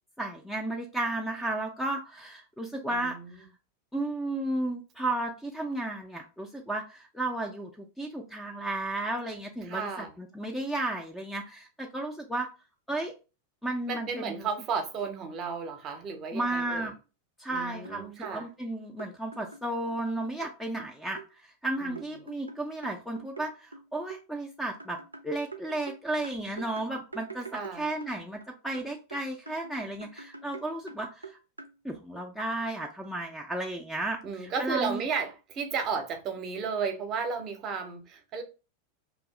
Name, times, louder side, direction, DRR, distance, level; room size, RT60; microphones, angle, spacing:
voice 1, 0.2-3.5 3.9-12.5 12.9-13.1 13.6-14.5 16.3-16.9 17.4-27.5 27.8-31.4 31.8-35.0, right 2 dB, 5° left, 0.4 m, -33 dB
voice 2, 2.9-3.4 9.7-10.1 13.9-16.9 17.5-18.5 21.8-22.0 27.5-27.9 34.2-38.4, right 5 dB, 30° right, 0.7 m, -33 dB
sound 1, 17.8-18.4 19.0-20.5 20.8-21.3 22.0-24.2 24.8-28.5 28.7-31.8, right 4 dB, 80° right, 0.3 m, -45 dB
2.6 x 2.4 x 3.6 m
figure-of-eight pair, 90°, 0 cm